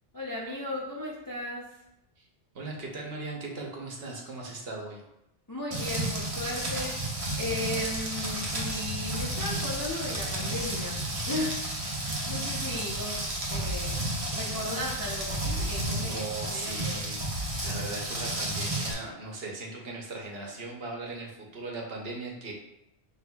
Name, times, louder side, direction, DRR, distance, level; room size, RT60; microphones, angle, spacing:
voice 1, 0.1-1.8 5.5-6.9 7.4-11.0 11.3-11.6 12.3-17.1, left 1 dB, 35° left, -4 dB, 0.3 m, -36 dB
voice 2, 2.5-5.0 16.0-17.1 17.6-22.5, right 3 dB, 60° right, -1 dB, 1.0 m, -38 dB
Rain, 5.7-18.9, right 1 dB, 35° right, 0.8 m, -32 dB
6.1 x 2.9 x 2.2 m, 0.88 s
omnidirectional pair, 1.2 m